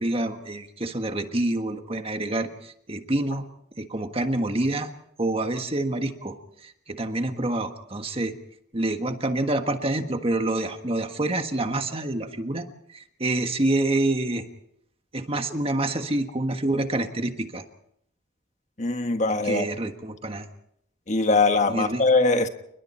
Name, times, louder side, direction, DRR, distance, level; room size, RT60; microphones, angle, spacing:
voice 1, 0.0-3.4 3.8-4.9 5.2-6.4 6.6-8.3 8.7-12.6 12.9-14.5 15.1-17.6 19.4-20.4 21.7-22.0, right 2 dB, 30° right, 6 dB, 1.5 m, -27 dB
voice 2, 18.8-19.7 21.1-22.5, left 3 dB, 35° left, 7 dB, 1.4 m, -21 dB
30.0 x 21.0 x 4.4 m, 0.74 s
head